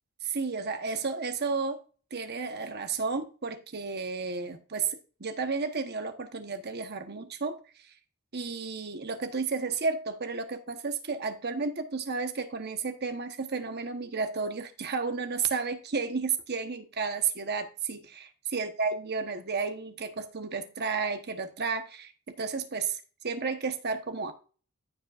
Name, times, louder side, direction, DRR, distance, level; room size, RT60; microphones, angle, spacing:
voice 1, 0.2-1.8 2.1-7.6 8.3-24.3, right 4 dB, 50° right, 1.1 m, -32 dB
14.5 x 5.1 x 2.5 m
head